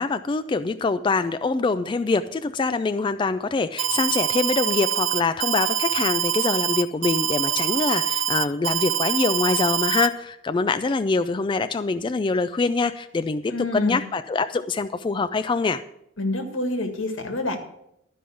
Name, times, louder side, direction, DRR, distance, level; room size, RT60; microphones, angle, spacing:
voice 1, 0.0-15.8, left 3 dB, 25° left, 10 dB, 0.3 m, -24 dB
Alarm, 3.8-10.1, right 10 dB, 80° right, 0.6 m, -24 dB
voice 2, 13.5-14.0 16.2-17.6, left 2 dB, 90° left, 6 dB, 1.7 m, -27 dB
12.0 x 5.4 x 7.6 m, 0.78 s
head